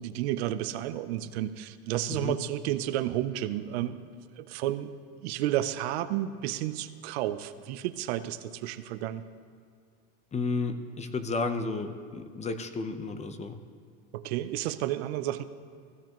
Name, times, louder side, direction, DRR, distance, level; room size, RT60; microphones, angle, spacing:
voice 1, 0.0-4.1 4.4-4.9 5.2-9.2 14.1-15.4, right 13 dB, 85° right, 12 dB, 0.7 m, -31 dB
voice 2, 10.3-13.6, left 3 dB, 20° left, 9 dB, 0.8 m, -32 dB
15.5 x 14.0 x 3.0 m, 2.2 s
supercardioid pair, 120°, 31 cm